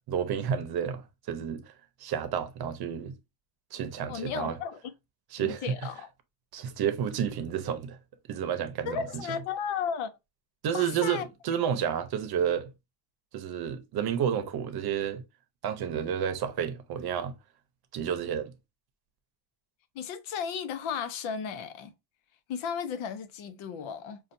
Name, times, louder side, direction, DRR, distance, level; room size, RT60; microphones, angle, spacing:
voice 1, 0.1-1.7 2.0-3.1 3.7-4.6 5.3-5.6 6.5-8.0 8.3-9.2 10.6-12.7 13.3-15.2 15.6-17.3 17.9-18.5, right 8 dB, 55° right, 0.7 m, -30 dB
voice 2, 4.1-4.9 5.4-6.1 8.9-10.1 10.7-11.2 19.9-21.9 22.5-24.2, left 7 dB, 85° left, 0.8 m, -34 dB
5.5 x 2.4 x 2.5 m
cardioid pair, 155°, 46 cm